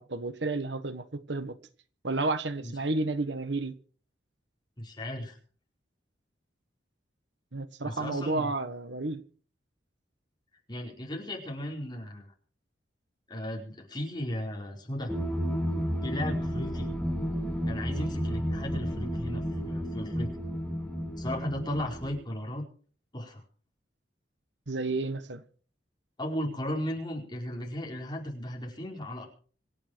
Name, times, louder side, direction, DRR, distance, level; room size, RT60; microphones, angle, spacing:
voice 1, 0.0-1.6 2.0-3.7 7.5-9.2 24.7-25.4, right 3 dB, 70° right, 1.3 m, -31 dB
voice 2, 4.8-5.4 7.8-8.5 10.7-12.3 13.3-15.1 16.0-16.9 17.7-20.3 21.2-22.6 23.1-23.4 26.2-29.2, left 1 dB, 25° left, 4.8 m, -35 dB
sound 1, 15.1-22.2, equal, 5° left, 1.6 m, -32 dB
26.5 x 8.9 x 4.7 m
head